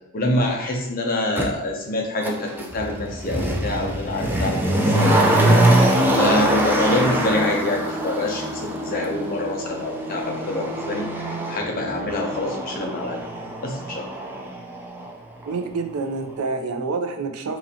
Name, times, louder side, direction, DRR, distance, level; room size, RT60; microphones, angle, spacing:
voice 1, 0.1-11.2 11.5-13.2 13.6-14.1, left 2 dB, 40° left, 1 dB, 0.6 m, -26 dB
Motor vehicle (road), 1.4-1.5 2.2-15.1 15.4-15.5, right 1 dB, 10° right, 0.4 m, -23 dB
voice 2, 15.4-17.6, right 4 dB, 75° right, 6 dB, 0.4 m, -27 dB
3.8 x 2.9 x 2.7 m, 0.92 s
head